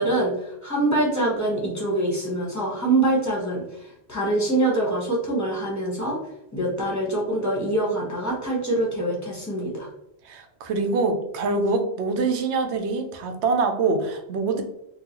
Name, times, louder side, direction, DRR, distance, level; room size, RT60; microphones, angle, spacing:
voice 1, 0.0-6.2 6.5-9.9, right 2 dB, 15° left, -3 dB, 1.0 m, -24 dB
voice 2, 10.2-14.6, right 3 dB, 85° right, 5 dB, 0.9 m, -24 dB
3.8 x 2.3 x 2.9 m, 0.83 s
omnidirectional pair, 1.1 m